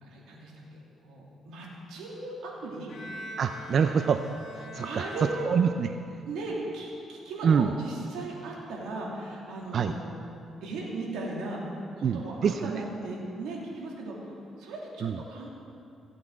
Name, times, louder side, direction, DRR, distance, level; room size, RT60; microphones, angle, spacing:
voice 1, 0.0-2.9 4.8-5.5 6.3-10.1 10.6-14.3 14.6-15.5, right 2 dB, 85° right, -3 dB, 2.5 m, -37 dB
Bowed string instrument, 2.9-6.2, left 1 dB, 70° left, 1.8 m, -42 dB
voice 2, 3.4-4.3 4.5-5.9 7.4-7.7 9.7-10.0 12.0-12.8 15.0-15.2, right 6 dB, 55° right, 8 dB, 0.4 m, -26 dB
16.5 x 8.5 x 4.6 m, 2.6 s
cardioid pair, 90°, 0 cm